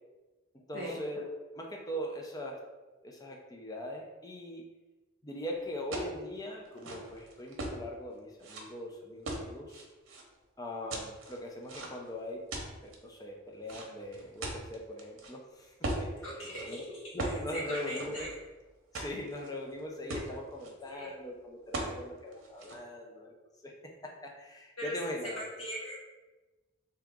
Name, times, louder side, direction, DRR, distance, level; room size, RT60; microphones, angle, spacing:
voice 1, 0.7-1.2 1.5-2.6 3.0-4.6 5.2-9.9 10.6-12.4 12.8-16.8 17.1-18.3 18.9-23.3 23.6-25.4, equal, 20° left, 0 dB, 0.5 m, -41 dB
sound 1, 5.9-6.2 6.7-7.8 8.4-8.6 9.3-10.2 10.9-12.1 12.5-12.9 13.7-15.3 15.8-16.1 16.5-16.7 17.2-17.4 17.7-18.5 18.9-19.5 19.8-19.9 20.1-20.7 21.7-22.0 22.3-22.8, right 2 dB, 75° right, 0.8 m, -38 dB
voice 2, 16.2-16.8 17.5-18.3 20.9-21.1 24.8-25.0 25.2-26.0, equal, 85° left, -5 dB, 1.4 m, -39 dB
3.5 x 2.9 x 3.6 m, 1.2 s
head